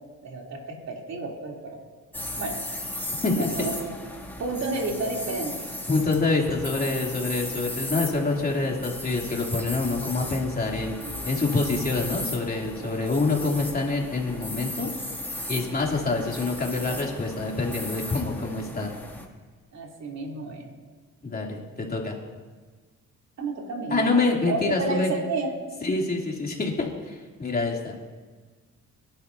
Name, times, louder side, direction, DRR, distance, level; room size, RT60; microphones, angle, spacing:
voice 1, 0.2-1.8 2.4-2.6 3.3-3.9 4.4-5.5 11.0-11.3 19.7-20.7 23.4-24.1 24.5-25.5, right 3 dB, 60° right, -1 dB, 3.5 m, -31 dB
sound 1, 2.1-19.3, left 1 dB, 5° left, 2.6 m, -36 dB
voice 2, 3.2-3.7 5.9-10.9 11.2-14.9 15.5-18.9 21.2-22.1 23.9-25.2 25.8-27.9, left 3 dB, 30° left, -2 dB, 3.1 m, -26 dB
24.0 x 11.5 x 2.8 m, 1.4 s
cardioid pair, 90°, 30 cm